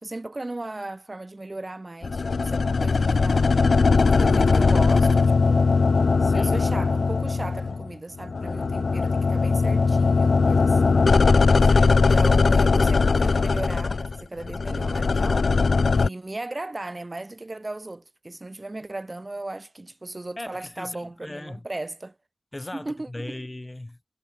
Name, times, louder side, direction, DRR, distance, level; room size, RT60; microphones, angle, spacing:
voice 1, 0.0-3.6 3.9-5.7 6.3-11.1 11.9-15.5 15.9-22.1 22.7-23.4, right 2 dB, 30° right, 2.8 m, -36 dB
sound 1, 2.0-7.9 8.2-16.1, left 4 dB, 70° left, 0.6 m, -20 dB
voice 2, 6.2-6.6 11.6-12.1 20.4-21.7 22.5-24.1, left 1 dB, 20° left, 7.7 m, -38 dB
wide cardioid pair, 95°, 0 cm